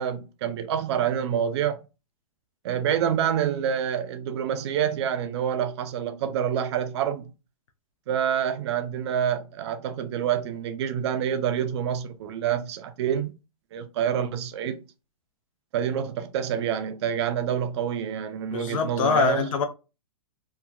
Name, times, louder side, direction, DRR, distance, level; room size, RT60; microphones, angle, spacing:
voice 1, 0.0-1.8 2.6-7.3 8.1-13.3 13.7-14.8 15.7-19.4, right 9 dB, 50° right, 0.4 m, -27 dB
voice 2, 18.5-19.6, left 6 dB, 65° left, 0.6 m, -24 dB
2.8 x 2.3 x 2.4 m
hypercardioid pair, 135°, 19 cm